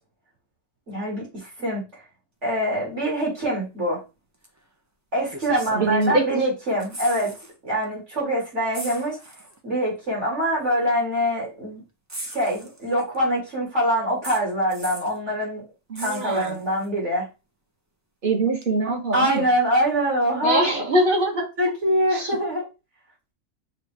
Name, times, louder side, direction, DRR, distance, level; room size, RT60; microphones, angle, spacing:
voice 1, 0.9-1.8 2.4-4.0 5.1-7.3 7.6-9.2 9.6-11.8 12.3-15.6 16.0-17.3 19.1-20.7 21.6-22.6, equal, 60° right, -4 dB, 3.0 m, -24 dB
sound 1, 4.4-4.6 5.3-6.4 6.7-7.5 7.8-8.0 8.7-9.6 10.6-10.7 12.1-13.2 14.2-15.2 15.9-16.9 18.6-18.7, right 1 dB, 25° right, 0.3 m, -39 dB
voice 2, 5.7-6.2 15.9-16.6 18.2-19.4 20.4-21.5 22.1-22.4, right 2 dB, 40° right, 0 dB, 1.3 m, -23 dB
6.6 x 2.4 x 3.3 m, 0.28 s
omnidirectional pair, 1.4 m